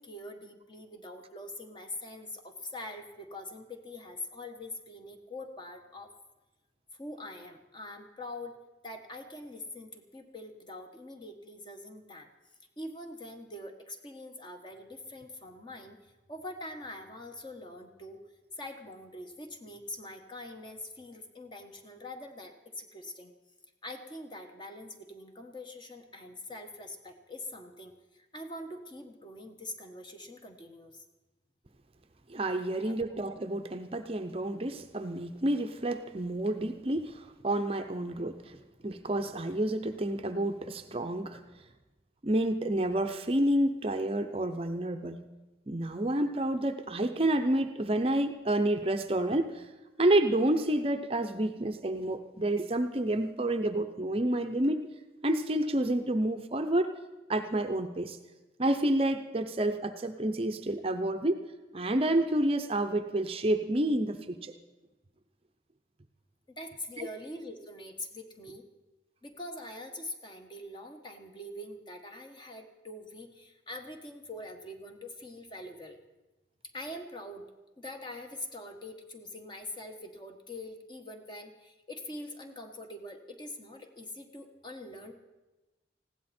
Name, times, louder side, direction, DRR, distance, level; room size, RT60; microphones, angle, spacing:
voice 1, 0.0-6.1 7.0-8.5 8.8-12.3 12.8-16.0 16.3-18.2 18.5-23.3 23.8-31.0 32.4-32.9 66.6-68.6 69.2-76.0 76.7-77.4 77.8-85.1, left 1 dB, 25° left, 4 dB, 1.4 m, -44 dB
voice 2, 32.3-38.6 38.8-41.4 42.2-45.3 45.7-49.7 50.0-54.8 55.2-56.9 57.3-58.2 58.6-61.4 61.7-64.5 67.0-67.1, right 1 dB, 30° right, 7 dB, 0.7 m, -29 dB
19.5 x 16.0 x 4.3 m, 1.1 s
head